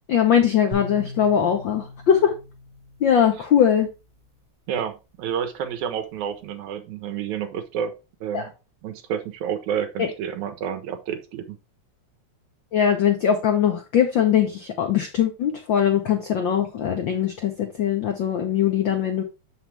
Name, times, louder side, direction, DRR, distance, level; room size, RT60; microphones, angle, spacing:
voice 1, 0.1-2.4 3.0-3.9 8.3-8.5 10.0-10.1 12.7-19.2, left 8 dB, 80° left, 5 dB, 1.0 m, -21 dB
sound 1, 0.7-4.0, left 2 dB, 15° right, 1.3 m, -39 dB
voice 2, 4.7-7.9 8.2-8.5 8.8-11.6, right 8 dB, 85° right, 9 dB, 2.4 m, -29 dB
7.3 x 5.8 x 3.3 m, 0.28 s
omnidirectional pair, 3.3 m